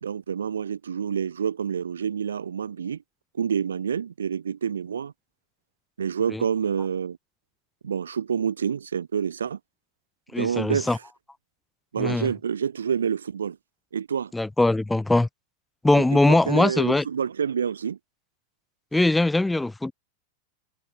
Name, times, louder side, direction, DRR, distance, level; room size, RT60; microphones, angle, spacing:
voice 1, 0.0-3.0 3.3-5.1 6.0-7.2 7.8-9.6 10.4-11.0 11.9-13.6 13.9-14.3 15.9-18.0, right 7 dB, 70° right, 0.7 m, -28 dB
voice 2, 10.3-11.0 12.0-12.3 14.3-15.3 15.8-17.0 18.9-19.9, left 2 dB, 5° left, 0.7 m, -21 dB
figure-of-eight pair, 90°, 0 cm